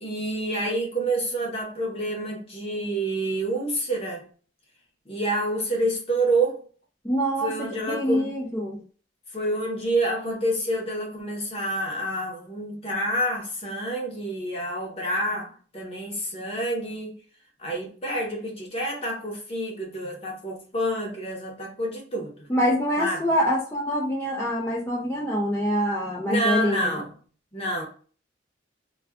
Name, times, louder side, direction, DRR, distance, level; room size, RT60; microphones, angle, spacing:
voice 1, 0.0-4.2 5.1-6.6 7.4-8.3 9.3-17.1 17.6-22.5 23.0-23.2 26.2-27.1 27.5-27.8, right 1 dB, 35° left, 0.8 m, -28 dB
voice 2, 7.0-8.8 22.5-27.0, equal, 10° left, 0.5 m, -25 dB
2.3 x 2.3 x 3.3 m
head